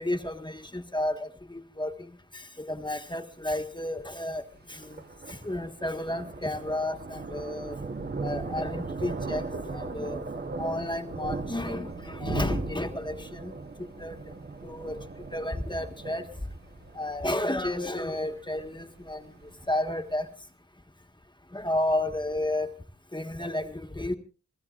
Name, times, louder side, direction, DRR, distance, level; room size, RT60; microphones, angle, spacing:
voice 1, 0.0-5.0 5.3-7.8 8.2-9.4 9.7-10.2 10.6-13.5 14.0-14.2 14.6-15.0 15.3-16.2 16.9-19.3 19.7-20.2 21.5-22.7 23.1-24.2, left 1 dB, 15° left, 5 dB, 1.5 m, -32 dB
Thunder, 3.3-20.2, right 3 dB, 35° right, 1.0 m, -38 dB
29.0 x 15.5 x 2.5 m, 0.36 s
wide cardioid pair, 125°, 30 cm